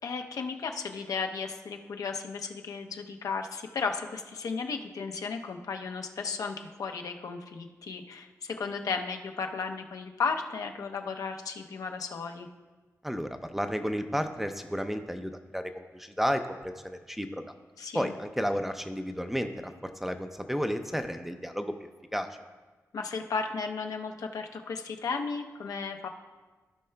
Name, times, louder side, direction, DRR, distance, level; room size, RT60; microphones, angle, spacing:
voice 1, 0.0-12.5 17.8-18.1 22.9-26.1, left 5 dB, 80° left, 4 dB, 0.6 m, -34 dB
voice 2, 13.0-17.4 17.9-22.4, equal, 5° right, 7 dB, 0.4 m, -32 dB
15.5 x 5.6 x 2.2 m, 1.3 s
wide cardioid pair, 130°, 6 cm